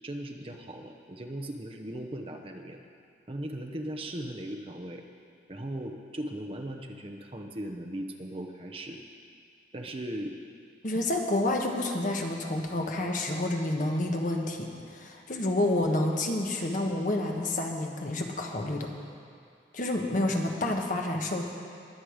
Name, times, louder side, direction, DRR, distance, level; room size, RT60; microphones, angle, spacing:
voice 1, 0.0-2.9 3.3-5.1 5.5-9.0 9.7-10.4, right 1 dB, 30° right, 3 dB, 0.8 m, -38 dB
voice 2, 10.8-18.9 19.7-21.4, left 1 dB, 45° left, 2 dB, 1.2 m, -29 dB
21.0 x 7.8 x 5.0 m, 2.3 s
head